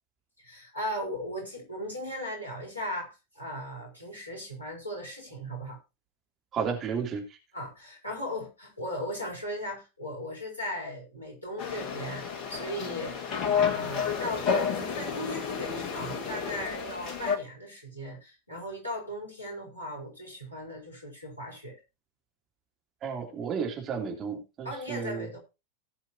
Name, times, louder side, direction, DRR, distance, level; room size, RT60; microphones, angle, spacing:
voice 1, 0.4-5.8 7.5-21.8 24.6-25.4, equal, 90° right, -1 dB, 4.8 m, -37 dB
voice 2, 6.5-7.2 23.0-25.3, right 6 dB, 30° right, 1 dB, 3.2 m, -32 dB
sound 1, 11.6-17.4, left 6 dB, 35° left, 1.8 m, -30 dB
18.5 x 7.1 x 2.9 m, 0.27 s
figure-of-eight pair, 90°, 0 cm